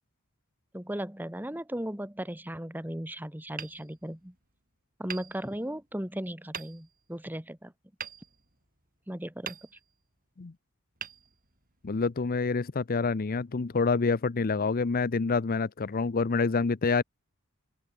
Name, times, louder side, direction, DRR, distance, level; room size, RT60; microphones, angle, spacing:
voice 1, 0.7-4.3 5.0-7.7 9.1-9.6, right 1 dB, 10° right, 1.7 m, -36 dB
Hammer, 3.5-4.6 5.1-6.0 6.5-7.1 8.0-9.0 9.4-10.2 11.0-11.9, right 7 dB, 40° right, 7.6 m, -44 dB
voice 2, 11.8-17.0, left 4 dB, 40° left, 0.6 m, -27 dB
open air
head